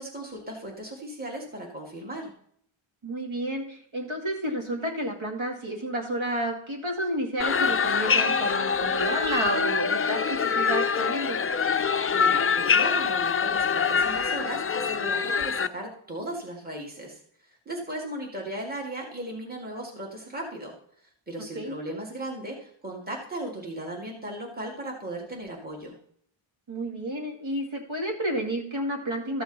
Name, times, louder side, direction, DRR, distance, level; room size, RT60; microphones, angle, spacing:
voice 1, 0.0-2.3 12.1-17.2 17.7-20.8 21.3-26.0, right 1 dB, 20° right, -2 dB, 2.1 m, -36 dB
voice 2, 3.0-11.4 21.5-21.7 26.7-29.4, right 1 dB, 70° right, 1 dB, 2.4 m, -31 dB
sound 1, 7.4-15.7, left 6 dB, 30° left, 0.4 m, -25 dB
13.5 x 6.8 x 4.0 m, 0.66 s
wide cardioid pair, 80°, 50 cm